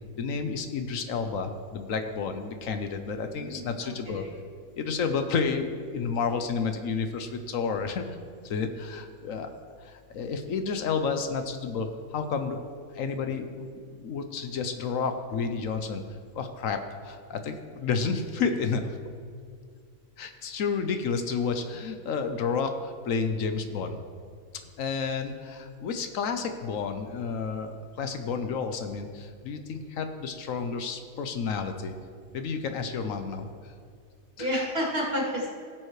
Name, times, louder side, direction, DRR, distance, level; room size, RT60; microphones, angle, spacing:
voice 1, 0.2-4.2 4.8-8.2 8.4-9.5 9.8-12.6 12.9-13.7 14.0-16.0 16.3-19.0 20.2-24.0 24.8-31.9 32.3-33.5 34.4-34.5, left 5 dB, 75° left, 7 dB, 1.1 m, -31 dB
voice 2, 3.2-4.3 34.4-35.5, equal, 45° right, -7 dB, 3.1 m, -31 dB
17.0 x 7.5 x 3.2 m, 2.1 s
omnidirectional pair, 1.4 m